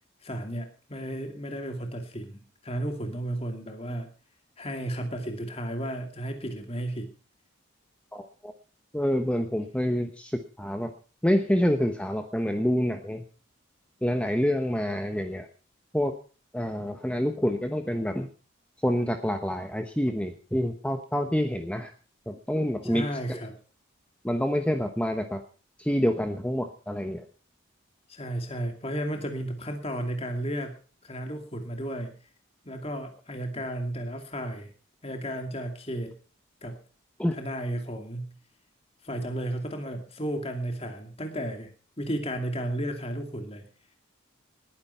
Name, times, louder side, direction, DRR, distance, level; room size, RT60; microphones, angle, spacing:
voice 1, 0.2-4.1 4.6-7.1 22.8-23.5 28.1-30.7 31.0-32.1 32.6-34.7 35.0-36.1 36.6-36.8 37.3-38.3 39.0-41.7 42.0-43.7, right 1 dB, 25° left, 5 dB, 2.4 m, -33 dB
voice 2, 8.1-8.5 8.9-10.9 11.2-13.2 14.0-15.5 15.9-16.1 16.5-18.3 18.8-21.9 22.3-23.4 24.2-25.4 25.8-27.2 37.2-37.3, equal, 5° left, 6 dB, 1.0 m, -27 dB
20.0 x 10.0 x 5.7 m, 0.39 s
head